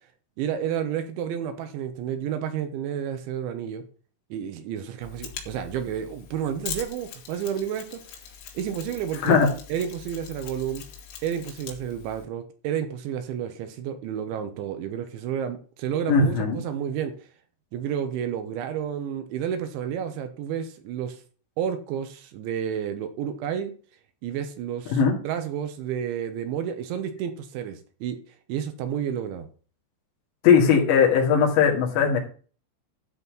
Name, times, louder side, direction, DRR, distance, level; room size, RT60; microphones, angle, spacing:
voice 1, 0.4-3.8 4.3-8.0 8.5-9.4 9.7-10.8 11.2-17.1 17.7-21.2 21.6-23.7 24.2-25.0 25.2-28.2 28.5-29.5, right 9 dB, 75° right, 8 dB, 3.3 m, -30 dB
Mechanisms, 5.0-12.2, left 8 dB, 90° left, 4.7 m, -42 dB
voice 2, 16.1-16.6 24.9-25.1 30.4-32.2, left 6 dB, 65° left, -1 dB, 4.3 m, -19 dB
12.5 x 4.3 x 7.0 m, 0.40 s
omnidirectional pair, 5.7 m